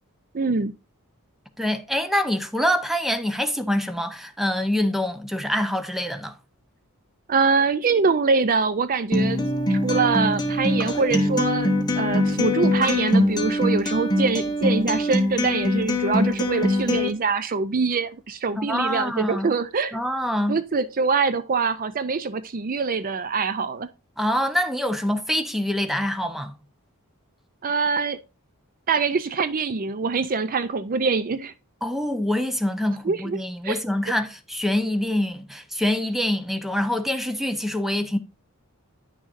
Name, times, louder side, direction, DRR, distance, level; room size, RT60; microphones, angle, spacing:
voice 1, 0.3-0.7 7.3-20.0 20.5-23.9 27.6-28.2 28.9-31.5 33.0-33.4 33.6-33.8 34.1-34.2, right 4 dB, 40° right, 0.5 m, -24 dB
voice 2, 1.6-6.3 18.6-19.5 19.9-20.6 24.2-26.5 31.8-38.2, left 1 dB, ahead, 0.8 m, -25 dB
Acoustic guitar, 9.1-17.1, left 1 dB, 20° left, 1.2 m, -23 dB
10.0 x 6.4 x 2.5 m
head